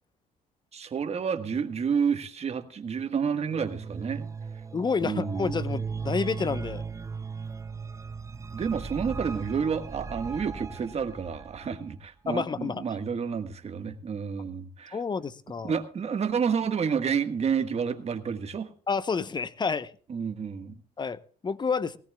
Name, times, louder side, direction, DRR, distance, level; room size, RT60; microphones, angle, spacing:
voice 1, 0.7-4.3 5.0-5.6 8.5-15.0 15.6-18.7 20.1-20.8, right 6 dB, 40° right, 1.5 m, -30 dB
sound 1, 3.5-11.8, right 5 dB, 20° right, 0.6 m, -37 dB
voice 2, 4.7-6.8 12.3-12.8 14.9-15.7 18.9-19.9 21.0-22.0, left 5 dB, 25° left, 0.8 m, -29 dB
19.0 x 17.0 x 2.3 m
cardioid pair, 95°, 16 cm